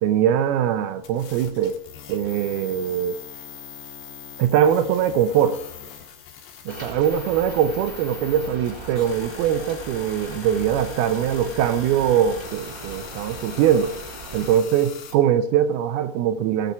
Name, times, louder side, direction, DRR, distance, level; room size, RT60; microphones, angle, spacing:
voice 1, 0.0-1.8 2.1-3.2 4.4-5.6 6.7-13.9 14.3-16.7, right 9 dB, 80° right, 10 dB, 2.5 m, -22 dB
sound 1, 1.0-15.1, left 7 dB, 85° left, 3.7 m, -42 dB
Rain, 6.7-14.6, right 2 dB, 10° right, 2.3 m, -39 dB
18.0 x 7.0 x 5.9 m, 0.69 s
omnidirectional pair, 4.7 m